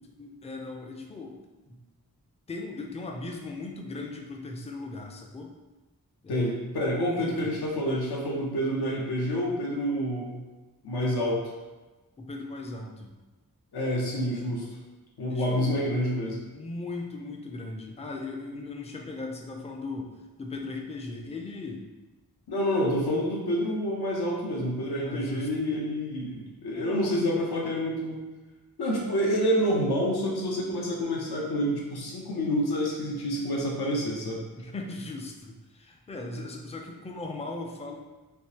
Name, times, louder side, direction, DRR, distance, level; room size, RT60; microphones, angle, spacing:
voice 1, 0.0-1.4 1.7-1.8 2.5-5.5 6.2-6.6 7.0-7.5 12.2-13.1 15.3-15.8 16.5-21.8 25.0-25.5 26.7-27.4 34.6-38.0, left 2 dB, 20° left, 1 dB, 0.4 m, -38 dB
voice 2, 6.3-10.4 10.8-11.4 13.7-14.7 15.2-16.4 22.5-28.2 28.8-34.4, equal, 75° left, -2 dB, 0.8 m, -28 dB
3.5 x 2.7 x 2.8 m, 1.2 s
wide cardioid pair, 120°, 39 cm